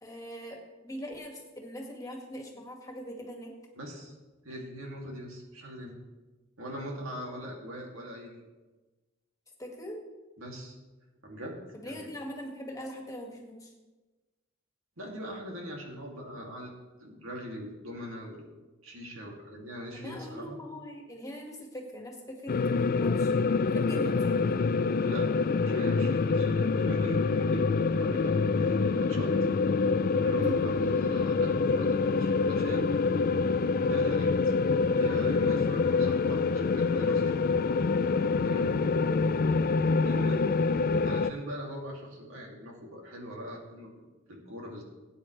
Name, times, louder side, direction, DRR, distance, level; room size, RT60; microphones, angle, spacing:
voice 1, 0.0-3.5 9.6-10.0 11.7-13.7 19.9-23.3 23.7-24.5 30.4-30.6 39.6-39.8, equal, 15° left, 0 dB, 2.0 m, -41 dB
voice 2, 3.8-4.1 4.4-5.9 6.6-8.4 10.4-10.7 11.2-12.0 15.0-16.7 17.0-18.5 18.8-20.6 24.0-24.1 25.0-25.4 25.6-29.3 30.2-32.9 33.9-34.5 34.9-37.4 37.8-37.9 38.4-38.8 40.0-40.4 41.0-43.9 44.3-44.8, equal, 85° right, -1 dB, 2.6 m, -41 dB
sound 1, 22.5-41.3, left 4 dB, 45° left, 0.4 m, -26 dB
18.5 x 9.2 x 3.3 m, 1.2 s
head